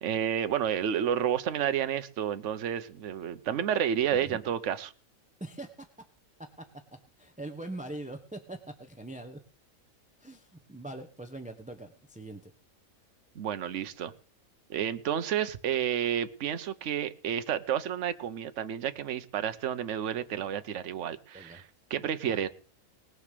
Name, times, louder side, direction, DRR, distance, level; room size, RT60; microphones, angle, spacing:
voice 1, 0.0-4.9 13.3-14.1 14.7-21.6 21.9-22.5, right 9 dB, 60° right, 11 dB, 1.2 m, -30 dB
voice 2, 5.4-5.9 6.6-6.7 7.2-9.4 10.2-12.5 21.3-21.6 22.3-22.4, right 2 dB, 5° right, 7 dB, 0.9 m, -42 dB
19.0 x 6.5 x 6.7 m, 0.40 s
omnidirectional pair, 1.4 m